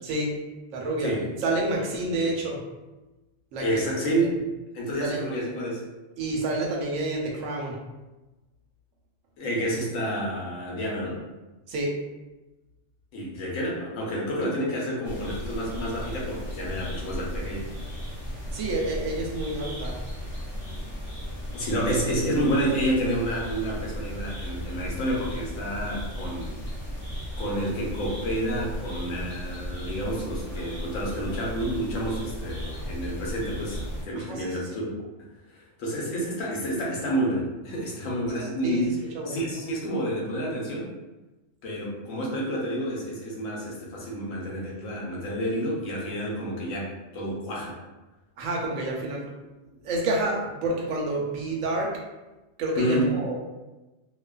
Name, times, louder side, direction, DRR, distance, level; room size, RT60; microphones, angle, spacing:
voice 1, 0.0-0.3 0.7-1.1 1.4-2.6 3.5-3.8 5.0-5.3 6.2-7.8 11.7-12.0 18.5-20.0 34.1-34.7 38.4-39.4 48.4-49.3 49.8-52.0 52.6-53.4, right 2 dB, 80° right, -1 dB, 1.0 m, -29 dB
voice 2, 3.6-4.4 4.7-5.9 9.4-11.2 13.1-17.6 21.5-26.5 27.4-34.9 35.5-39.0 39.3-40.9 41.6-47.8 52.8-53.1, equal, 75° left, -3 dB, 1.0 m, -29 dB
sound 1, 15.0-34.0, equal, 15° left, 0.9 m, -35 dB
2.6 x 2.3 x 2.2 m, 1.1 s
omnidirectional pair, 1.4 m